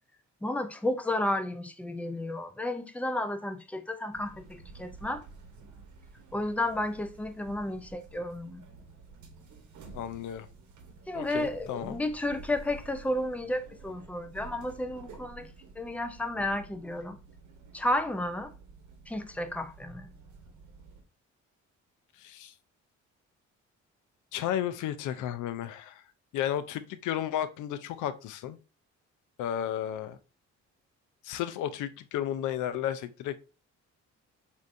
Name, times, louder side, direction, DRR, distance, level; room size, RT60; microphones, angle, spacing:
voice 1, 0.4-5.2 6.3-8.7 11.1-17.2 17.7-18.5 19.1-20.1, left 1 dB, 5° left, 0.4 m, -32 dB
sound 1, 4.1-21.0, right 4 dB, 70° right, 1.0 m, -51 dB
voice 2, 9.9-10.5 11.1-12.0 22.2-22.5 24.3-26.0 26.3-28.6 29.4-30.2 31.2-33.4, left 10 dB, 80° left, 0.5 m, -33 dB
4.4 x 2.7 x 2.6 m
cardioid pair, 90°, 30 cm